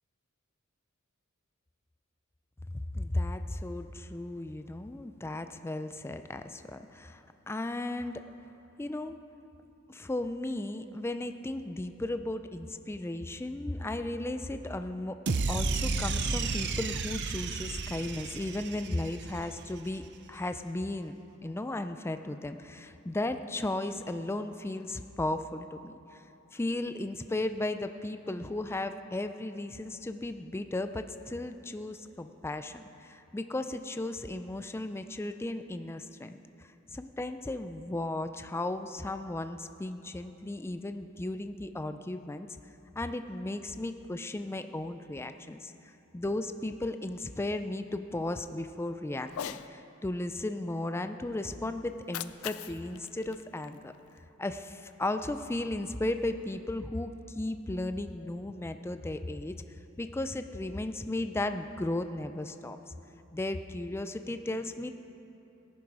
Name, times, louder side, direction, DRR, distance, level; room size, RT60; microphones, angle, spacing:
voice 1, 2.7-8.2 8.8-9.2 9.9-15.2 15.5-20.0 20.3-21.1 21.4-26.2 26.5-53.9 54.4-59.5 60.0-63.0 63.3-64.9, left 2 dB, 10° left, 9 dB, 0.4 m, -35 dB
sound 1, 15.3-19.6, right 4 dB, 55° right, 0.6 m, -32 dB
Cat, 49.3-49.7 51.9-54.2, left 10 dB, 80° left, 0.4 m, -42 dB
18.0 x 11.0 x 4.8 m, 2.9 s
head